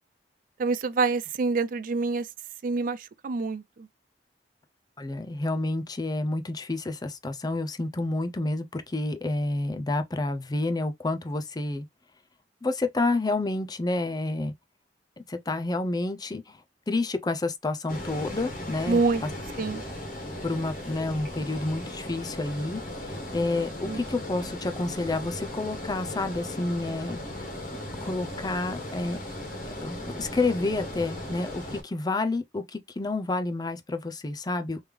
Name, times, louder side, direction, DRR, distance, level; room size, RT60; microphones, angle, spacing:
voice 1, 0.6-2.3 2.6-3.9 18.9-19.2 19.6-19.8 23.9-24.0, right 4 dB, 50° right, 0.4 m, -26 dB
voice 2, 5.0-11.9 12.6-14.5 15.3-16.6 16.9-19.0 20.4-27.5 28.0-29.2 29.8-34.8, left 2 dB, 25° left, 0.5 m, -29 dB
Water, 17.9-31.8, left 1 dB, 50° left, 1.5 m, -37 dB
3.5 x 3.2 x 3.2 m
head